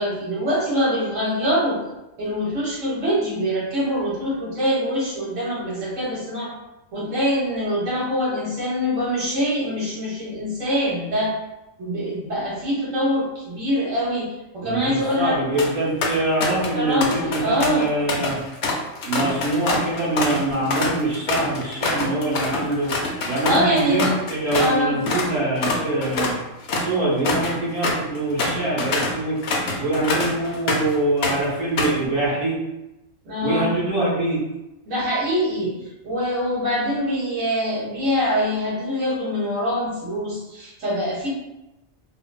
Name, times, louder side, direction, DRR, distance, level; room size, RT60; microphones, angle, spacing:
voice 1, 0.0-1.8 2.2-6.5 6.9-11.3 11.8-15.4 16.7-17.9 23.5-24.1 24.6-25.0 33.2-33.7 34.9-41.3, equal, 85° right, -7 dB, 1.4 m, -24 dB
voice 2, 14.6-18.4 19.0-22.9 23.3-26.3 26.7-29.4 29.8-32.6 33.4-34.4, right 2 dB, 60° right, -7 dB, 1.4 m, -24 dB
sound 1, 15.4-15.7 16.0-16.7 17.0-24.8 25.1-25.3 25.6-30.9 31.2-32.0, left 2 dB, 65° left, 0.8 m, -25 dB
3.7 x 2.1 x 2.3 m, 0.97 s
omnidirectional pair, 1.3 m